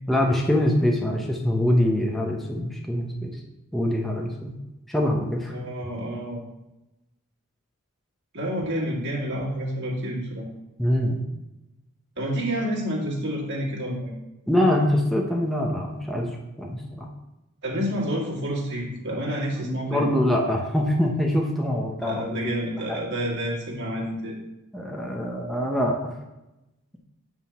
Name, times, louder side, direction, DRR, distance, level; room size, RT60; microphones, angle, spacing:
voice 1, 0.1-3.4 3.7-4.5 4.9-5.5 10.8-11.2 14.5-16.3 16.6-17.1 19.6-22.5 22.9-23.0 24.7-26.1, left 1 dB, ahead, -1 dB, 0.7 m, -24 dB
voice 2, 5.5-6.4 8.3-10.4 12.2-14.1 17.6-20.0 22.0-24.4, equal, 55° right, -3 dB, 2.2 m, -29 dB
8.7 x 3.7 x 5.7 m, 0.96 s
head